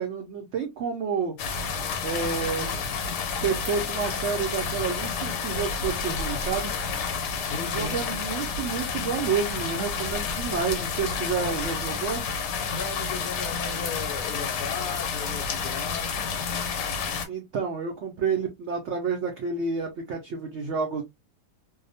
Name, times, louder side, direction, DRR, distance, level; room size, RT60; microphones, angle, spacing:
voice 1, 0.0-1.4 2.0-2.8 3.4-6.7 7.5-12.2 17.3-21.0, right 5 dB, 85° right, 0.6 m, -29 dB
sound 1, 1.4-17.3, left 5 dB, 90° left, 1.2 m, -30 dB
voice 2, 7.5-8.0 11.4-11.6 12.7-16.4, left 5 dB, 70° left, 1.0 m, -36 dB
2.8 x 2.0 x 2.6 m
omnidirectional pair, 1.8 m